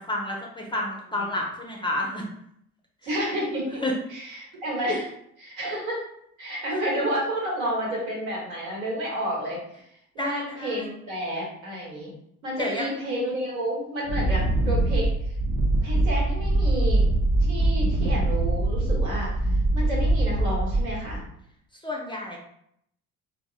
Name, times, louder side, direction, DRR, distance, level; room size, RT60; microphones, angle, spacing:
voice 1, 0.1-2.3 3.8-3.9 4.9-5.0 10.2-10.9 12.6-12.9 21.8-22.4, left 1 dB, 10° left, -1 dB, 0.4 m, -30 dB
voice 2, 3.0-3.8 4.1-5.1 5.4-6.0 6.4-9.6 10.1-12.1 12.4-15.1 15.8-17.0 17.4-19.3 19.7-21.2, equal, 75° right, -3 dB, 1.1 m, -30 dB
Wind, 14.0-21.2, right 2 dB, 50° right, 0.8 m, -23 dB
3.6 x 2.1 x 2.3 m, 0.73 s
figure-of-eight pair, 55°, 42 cm